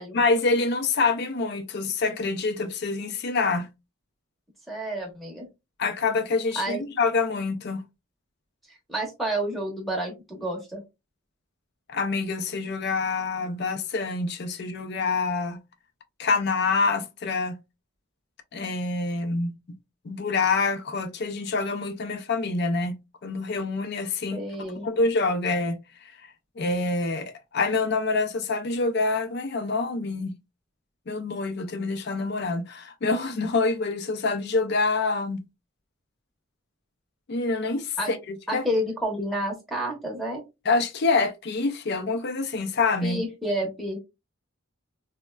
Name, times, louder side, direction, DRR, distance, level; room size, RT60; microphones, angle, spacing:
voice 1, 0.1-3.7 5.8-7.8 11.9-15.6 16.2-17.6 18.5-19.5 20.0-24.4 24.8-25.8 26.6-30.3 31.1-35.4 37.3-38.6 40.7-43.2, left 3 dB, 50° left, 0.4 m, -26 dB
voice 2, 4.7-5.5 6.6-6.8 8.9-10.8 24.3-24.9 38.0-38.1 38.5-40.4 43.0-44.0, right 1 dB, ahead, 0.7 m, -29 dB
4.1 x 2.1 x 2.2 m
head